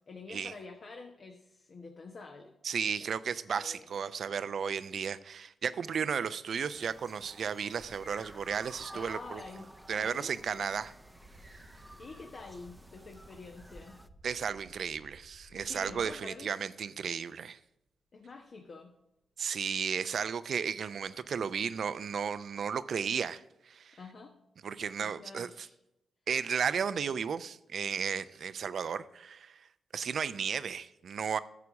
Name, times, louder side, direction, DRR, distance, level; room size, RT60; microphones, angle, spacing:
voice 1, 0.1-2.5 2.8-3.2 3.6-3.9 6.0-6.1 8.9-10.3 12.0-14.0 15.5-16.5 18.1-18.9 24.0-24.3 25.0-25.8, left 3 dB, 55° left, 3 dB, 1.1 m, -48 dB
voice 2, 2.6-9.4 9.9-10.9 14.2-17.6 19.4-24.0 24.6-25.7 26.3-29.7 29.9-31.4, right 7 dB, 65° right, 15 dB, 0.5 m, -34 dB
sound 1, 6.6-14.1, right 1 dB, 10° right, 0.7 m, -52 dB
sound 2, 7.7-16.5 17.6-17.7 19.9-20.0 20.2-22.8, equal, 75° left, 3.1 m, -58 dB
9.8 x 6.8 x 6.1 m, 0.84 s
hypercardioid pair, 40°, 0 cm